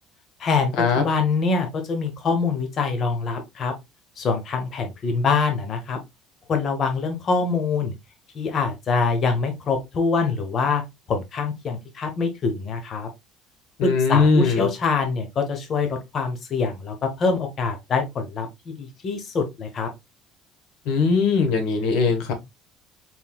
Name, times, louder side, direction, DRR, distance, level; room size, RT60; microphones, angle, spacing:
voice 1, 0.4-3.7 4.2-6.0 6.5-7.9 8.3-10.8 11.1-13.1 13.8-19.9, left 4 dB, 40° left, 0.9 m, -24 dB
voice 2, 13.8-14.7 20.8-22.3, left 4 dB, 75° left, 1.2 m, -20 dB
4.4 x 3.8 x 2.3 m
cardioid pair, 135°, 0 cm